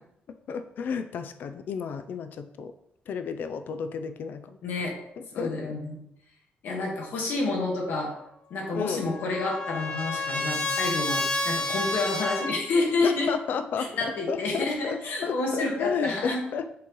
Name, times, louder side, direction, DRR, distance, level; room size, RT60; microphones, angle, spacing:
voice 1, 0.5-2.7 3.1-4.6 5.2-5.5 8.8-9.0 13.0-16.8, left 6 dB, 60° left, 9 dB, 0.4 m, -32 dB
voice 2, 4.6-4.9 5.3-5.9 6.6-8.1 8.5-13.3 13.8-16.4, left 3 dB, 80° left, 0 dB, 1.4 m, -29 dB
Trumpet, 8.7-12.6, left 2 dB, 25° left, 0.7 m, -30 dB
8.4 x 3.8 x 3.0 m, 0.78 s
cardioid pair, 150°, 4 cm